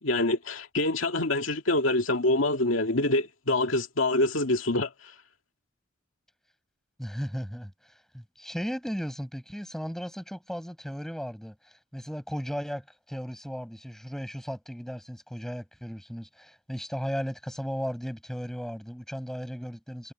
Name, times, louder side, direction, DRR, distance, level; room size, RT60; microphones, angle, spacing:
voice 1, 0.0-4.9, left 2 dB, 85° left, 2.2 m, -25 dB
voice 2, 7.0-7.7 8.1-20.1, equal, ahead, 7.7 m, -36 dB
head